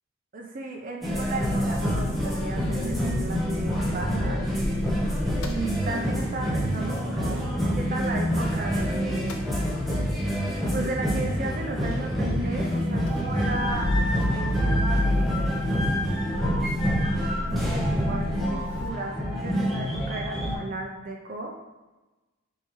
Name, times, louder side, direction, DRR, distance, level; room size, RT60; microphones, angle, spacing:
voice 1, 0.3-4.4 5.4-7.4 7.7-9.4 10.7-13.9 14.3-15.6 17.4-21.5, right 2 dB, 40° right, 0 dB, 0.5 m, -35 dB
sound 1, 1.0-20.6, equal, ahead, 0.8 m, -27 dB
Motor vehicle (road) / Engine starting / Idling, 1.1-8.8 9.1-18.9, left 1 dB, 80° left, 0.5 m, -33 dB
4.1 x 3.7 x 3.1 m, 1.1 s
head